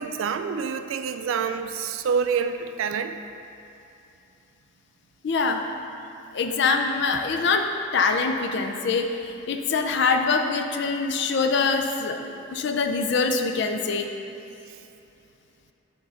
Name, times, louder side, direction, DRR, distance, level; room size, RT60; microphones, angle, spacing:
voice 1, 0.0-3.1, right 6 dB, 70° right, 9 dB, 0.3 m, -27 dB
voice 2, 5.2-5.6 6.3-7.7 7.9-14.1, left 4 dB, 55° left, 5 dB, 0.4 m, -24 dB
6.5 x 3.7 x 5.6 m, 2.8 s
head